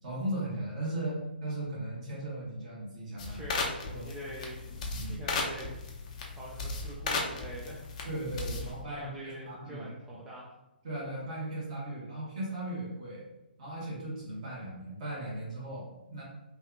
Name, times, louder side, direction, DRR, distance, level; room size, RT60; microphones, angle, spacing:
voice 1, 0.0-3.4 3.9-4.1 4.9-5.2 8.0-10.2 10.8-13.3 13.6-16.2, right 1 dB, 45° right, -5 dB, 1.5 m, -37 dB
sound 1, 3.2-8.8, left 3 dB, 40° left, 0.5 m, -36 dB
voice 2, 3.3-4.6 5.0-5.7 6.3-7.9 8.6-10.5, right 1 dB, 10° right, -6 dB, 0.4 m, -44 dB
3.4 x 2.4 x 2.3 m, 0.97 s
figure-of-eight pair, 130°, 6 cm